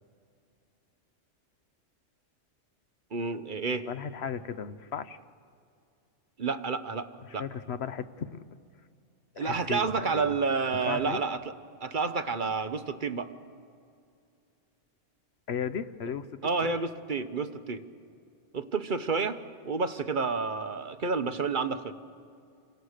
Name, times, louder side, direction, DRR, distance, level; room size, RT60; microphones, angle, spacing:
voice 1, 3.1-3.9 6.4-7.1 7.3-7.5 9.4-11.5 11.8-13.3 16.4-17.8 18.5-19.4 19.6-21.9, right 4 dB, 45° right, 9 dB, 1.0 m, -30 dB
voice 2, 3.9-5.2 7.2-8.4 9.3-10.3 10.9-11.2 15.5-16.7, left 7 dB, 60° left, 12 dB, 1.0 m, -36 dB
28.0 x 25.0 x 6.6 m, 2.4 s
omnidirectional pair, 1.3 m